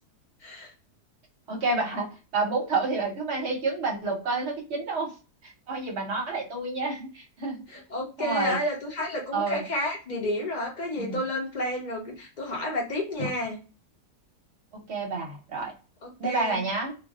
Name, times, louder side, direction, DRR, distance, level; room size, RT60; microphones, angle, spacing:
voice 1, 1.5-5.1 5.4-7.8 8.2-8.6 9.3-9.6 11.0-11.2 13.2-13.3 14.9-15.7 16.2-17.0, right 3 dB, 55° right, 0 dB, 0.9 m, -29 dB
voice 2, 7.7-13.6 16.0-16.6, left 1 dB, 85° left, -1 dB, 0.4 m, -31 dB
2.5 x 2.3 x 2.3 m, 0.33 s
omnidirectional pair, 1.7 m